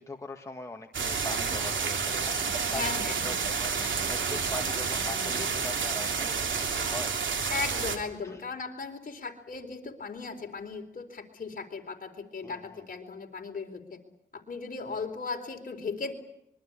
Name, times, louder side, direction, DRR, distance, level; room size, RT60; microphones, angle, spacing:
voice 1, 0.0-2.8 3.2-7.1 8.2-8.4 12.4-12.8 14.9-15.0, left 2 dB, 15° left, 3 dB, 1.8 m, -41 dB
sound 1, 0.9-8.0, right 5 dB, 85° right, 3.5 m, -30 dB
voice 2, 2.6-3.4 7.5-14.0 14.3-16.1, left 4 dB, 50° left, 4 dB, 4.1 m, -37 dB
25.5 x 23.0 x 8.7 m, 0.79 s
wide cardioid pair, 115°, 19 cm